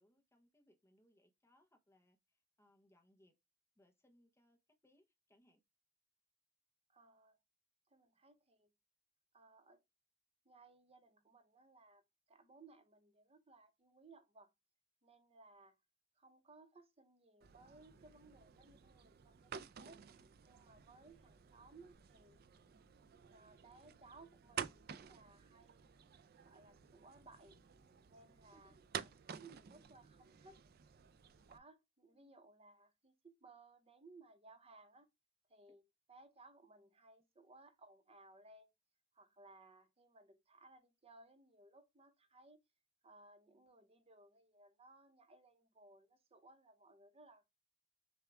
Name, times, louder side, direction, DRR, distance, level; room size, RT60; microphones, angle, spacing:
voice 1, 0.0-3.3 3.8-5.6 28.5-28.7 32.1-32.3, left 1 dB, 15° left, 0.7 m, -72 dB
voice 2, 6.9-7.4 7.9-8.7 9.3-9.8 10.4-12.0 12.3-14.5 15.0-15.7 16.2-20.0 20.4-22.4 23.3-26.0 26.4-27.6 28.1-30.6 31.4-35.1 35.5-35.8 36.1-38.7 39.1-42.6 43.0-47.5, right 3 dB, 30° right, 0.8 m, -62 dB
sound 1, 17.4-31.6, right 8 dB, 50° right, 0.4 m, -52 dB
6.9 x 2.3 x 3.3 m
head